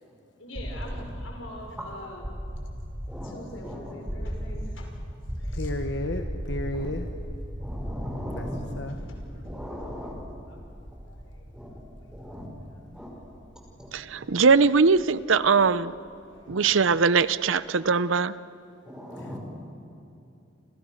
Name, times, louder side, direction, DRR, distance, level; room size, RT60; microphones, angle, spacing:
voice 1, 0.4-2.3 3.2-5.0 5.3-5.7 8.9-10.0 10.5-10.7 11.0-11.5 12.0-12.4 12.7-12.8 16.3-16.8, left 1 dB, 90° left, 2 dB, 5.7 m, -45 dB
sound 1, 0.5-16.4, equal, 20° right, 2.8 m, -37 dB
voice 2, 3.6-3.9 6.7-6.9 7.6-8.6 9.5-10.1 11.5-11.7 12.1-12.5 12.9-13.1 13.8-13.9 16.5-16.6 18.8-19.4, equal, 5° right, -1 dB, 5.5 m, -38 dB
voice 3, 5.5-7.1 8.3-8.5 8.8-9.0, left 1 dB, 60° left, 5 dB, 1.3 m, -32 dB
voice 4, 13.9-15.9 16.5-18.4, right 5 dB, 85° right, 16 dB, 0.7 m, -21 dB
30.0 x 26.5 x 6.5 m, 2.7 s
head